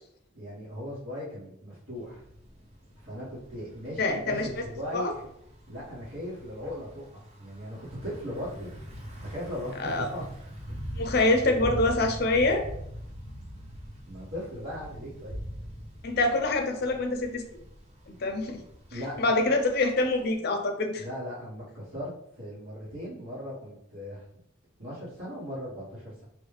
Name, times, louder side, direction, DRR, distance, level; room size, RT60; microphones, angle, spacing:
voice 1, 0.3-2.2 2.9-5.2 5.7-8.7 9.2-10.2 14.1-15.4 18.9-19.3 21.0-24.3 24.8-26.2, equal, 75° right, -10 dB, 1.5 m, -38 dB
Thunder / Bicycle, 1.9-20.4, equal, 35° right, 0.6 m, -43 dB
voice 2, 4.0-4.5 4.9-5.1 9.8-10.1 11.0-12.6 16.0-17.4 18.2-18.6 18.9-21.0, left 2 dB, 50° left, 4 dB, 0.5 m, -25 dB
3.2 x 2.3 x 3.2 m, 0.74 s
head